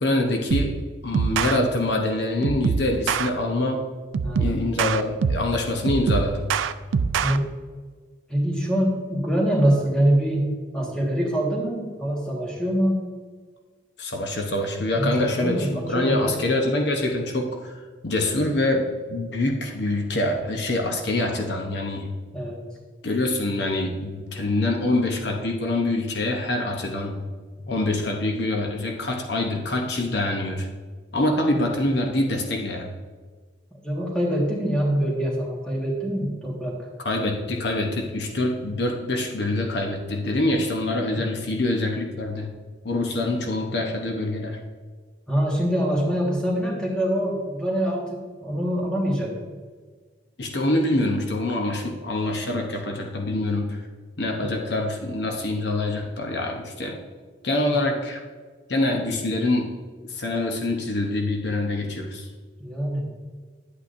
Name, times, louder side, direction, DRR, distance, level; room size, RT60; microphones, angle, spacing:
voice 1, 0.0-0.8 1.0-3.8 4.4-6.5 14.0-17.7 18.0-22.1 23.0-27.2 27.7-30.7 31.1-32.9 37.0-42.5 42.8-44.6 50.4-53.8 54.2-57.0 57.4-58.2 58.7-59.7 60.1-62.3, left 2 dB, 60° left, 2 dB, 0.8 m, -25 dB
sound 1, 0.5-0.8 1.1-1.6 2.4-3.3 4.1-5.5 5.9-7.4, right 5 dB, 85° right, 0.4 m, -24 dB
voice 2, 4.2-4.7 7.2-7.4 8.3-13.0 15.0-16.4 22.3-22.6 33.8-36.9 41.1-41.4 45.3-49.3 54.4-54.8 62.6-63.1, equal, 5° left, -3 dB, 1.5 m, -24 dB
10.0 x 8.4 x 2.6 m, 1.5 s
head